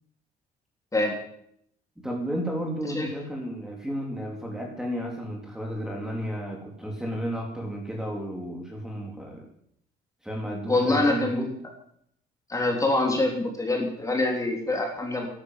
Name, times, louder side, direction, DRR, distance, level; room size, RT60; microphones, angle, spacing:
voice 1, 2.0-9.5 10.2-11.5, equal, 5° right, 0 dB, 3.6 m, -32 dB
voice 2, 10.7-11.4 12.5-15.3, left 2 dB, 20° left, 2 dB, 3.8 m, -25 dB
12.5 x 11.0 x 7.6 m, 0.69 s
cardioid pair, 110°, 17 cm